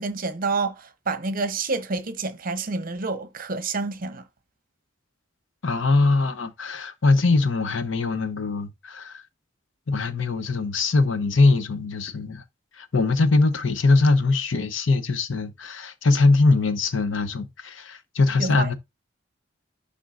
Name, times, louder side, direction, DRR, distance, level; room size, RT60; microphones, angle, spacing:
voice 1, 0.0-4.2 18.4-18.7, right 3 dB, 45° right, 0.8 m, -28 dB
voice 2, 5.6-9.2 9.9-12.4 12.8-18.7, left 3 dB, 80° left, 0.8 m, -22 dB
10.0 x 3.7 x 2.5 m
head